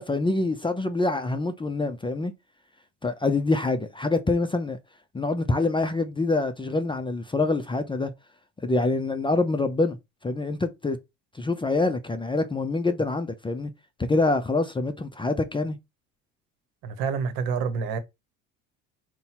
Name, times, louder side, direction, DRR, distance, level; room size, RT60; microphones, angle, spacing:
voice 1, 0.0-2.3 3.0-4.8 5.1-8.1 8.6-10.0 10.2-11.0 11.4-13.7 14.1-15.8, left 3 dB, 15° left, 0.5 m, -25 dB
voice 2, 16.8-18.0, right 5 dB, 65° right, 1.0 m, -27 dB
4.0 x 2.2 x 4.2 m
hypercardioid pair, 75°, 38 cm